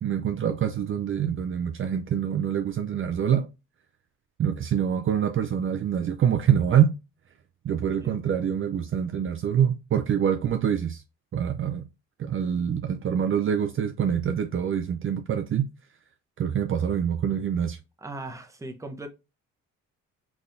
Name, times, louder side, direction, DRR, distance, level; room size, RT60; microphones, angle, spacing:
voice 1, 0.0-3.5 4.4-6.9 7.6-11.0 11.3-11.9 12.2-15.7 16.4-17.8, right 8 dB, 45° right, 0.5 m, -25 dB
voice 2, 7.7-8.2 18.0-19.1, right 2 dB, 10° right, 0.7 m, -39 dB
4.0 x 3.4 x 2.6 m
cardioid pair, 90°, 30 cm